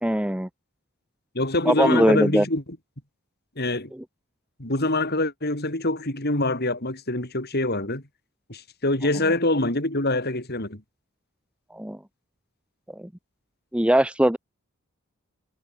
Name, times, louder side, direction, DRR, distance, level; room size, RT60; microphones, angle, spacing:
voice 1, 0.0-0.5 1.6-2.5 11.7-12.0 13.0-13.1 13.7-14.4, right 1 dB, 5° right, 0.8 m, -21 dB
voice 2, 1.3-2.6 3.6-3.9 4.6-8.0 8.5-10.8, left 2 dB, 45° left, 4.8 m, -25 dB
head